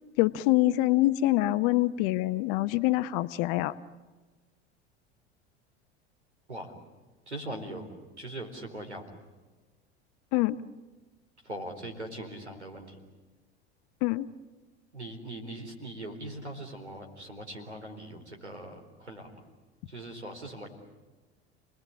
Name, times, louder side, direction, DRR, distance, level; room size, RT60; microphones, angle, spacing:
voice 1, 0.2-3.7 10.3-10.6 14.0-14.3, left 17 dB, 50° left, 14 dB, 0.9 m, -25 dB
voice 2, 7.3-7.9 8.2-9.0 11.4-13.0 14.9-19.4 19.9-20.7, right 1 dB, 85° right, 4 dB, 4.3 m, -41 dB
29.5 x 20.0 x 8.5 m, 1.3 s
figure-of-eight pair, 75°, 33 cm